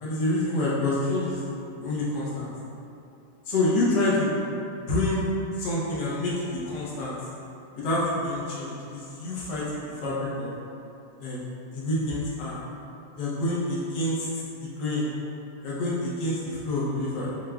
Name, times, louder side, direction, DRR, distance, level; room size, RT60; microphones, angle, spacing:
voice 1, 0.0-1.4 1.8-2.5 3.5-4.4 4.8-5.2 5.6-7.1 7.7-10.5 11.2-11.4 11.7-12.6 13.2-14.3 14.6-15.1 15.6-17.3, left 2 dB, 60° left, -7 dB, 1.4 m, -27 dB
6.5 x 2.4 x 2.3 m, 2.7 s
omnidirectional pair, 2.2 m